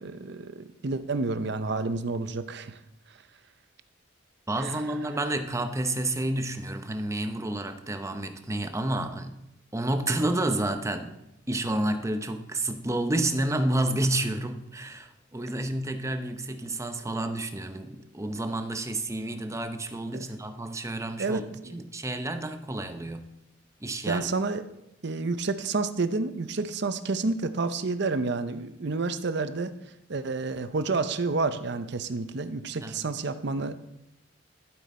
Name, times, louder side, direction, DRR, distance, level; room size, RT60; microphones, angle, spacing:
voice 1, 0.0-2.8 4.6-4.8 20.1-20.2 21.2-21.8 24.1-24.6 25.0-29.7 30.1-33.7, right 3 dB, 60° right, 12 dB, 0.7 m, -29 dB
voice 2, 4.5-9.3 9.7-11.2 11.5-21.4 21.7-23.2 23.8-24.3 32.8-33.2, right 1 dB, 15° right, 7 dB, 0.7 m, -30 dB
13.0 x 7.8 x 4.3 m, 0.86 s
head